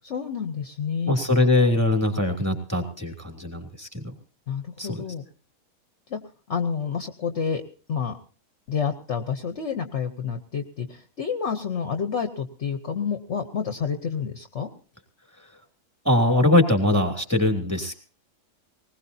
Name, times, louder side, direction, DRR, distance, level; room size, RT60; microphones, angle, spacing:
voice 1, 0.0-1.2 4.5-5.2 6.1-6.2 6.5-7.6 7.9-8.2 8.7-14.7, left 6 dB, 50° left, 8 dB, 1.1 m, -29 dB
voice 2, 1.1-4.0 4.8-5.0 16.0-18.1, left 1 dB, 10° right, 3 dB, 2.7 m, -22 dB
20.0 x 20.0 x 2.7 m, 0.38 s
omnidirectional pair, 1.7 m